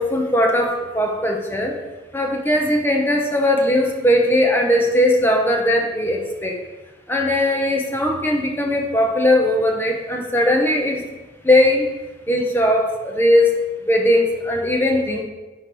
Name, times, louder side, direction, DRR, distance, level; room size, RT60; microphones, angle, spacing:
voice 1, 0.0-1.7 2.1-6.5 7.1-11.0 11.4-11.9 12.3-13.6 13.9-15.2, left 1 dB, 10° left, 1 dB, 0.7 m, -19 dB
4.5 x 4.4 x 5.3 m, 1.2 s
head